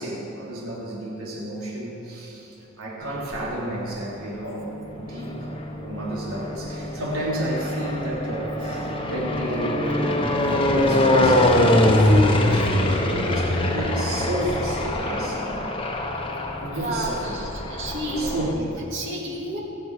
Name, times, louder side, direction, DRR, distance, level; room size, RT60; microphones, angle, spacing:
voice 1, 0.0-5.5 5.8-15.6 16.3-17.4 18.1-18.7, right 1 dB, 90° right, -5 dB, 3.7 m, -32 dB
sound 1, 3.0-3.8 4.5-18.5, left 1 dB, 25° left, 1.1 m, -23 dB
voice 2, 16.7-18.5 18.9-19.6, right 1 dB, 60° right, -1 dB, 2.3 m, -31 dB
24.0 x 8.0 x 5.0 m, 3.0 s
head